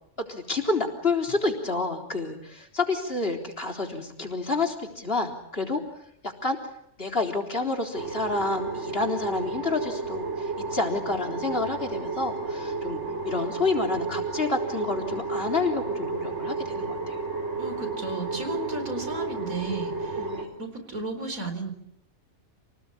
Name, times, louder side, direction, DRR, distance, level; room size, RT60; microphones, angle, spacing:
voice 1, 0.3-5.8 6.2-6.6 7.0-13.0 13.2-17.2 20.1-20.5, left 3 dB, 45° left, 2 dB, 4.1 m, -29 dB
sound 1, 7.9-20.4, right 3 dB, 55° right, 3.8 m, -32 dB
voice 2, 17.6-21.7, right 3 dB, 75° right, 7 dB, 4.7 m, -34 dB
27.5 x 19.5 x 8.6 m, 0.74 s
omnidirectional pair, 1.5 m